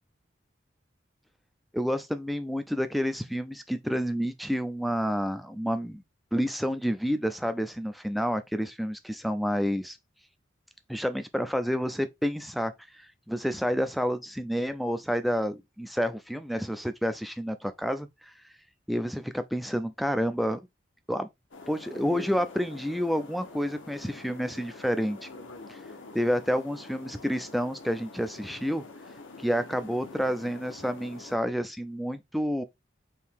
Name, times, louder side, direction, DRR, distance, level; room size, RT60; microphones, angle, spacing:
voice 1, 1.7-6.0 6.3-10.0 10.9-18.3 18.9-20.6 21.1-21.3 21.7-25.3 25.7-25.8 26.1-28.8 29.4-32.6, equal, ahead, 0.3 m, -29 dB
sound 1, 21.5-31.4, left 3 dB, 85° left, 0.9 m, -46 dB
4.5 x 2.8 x 3.5 m
head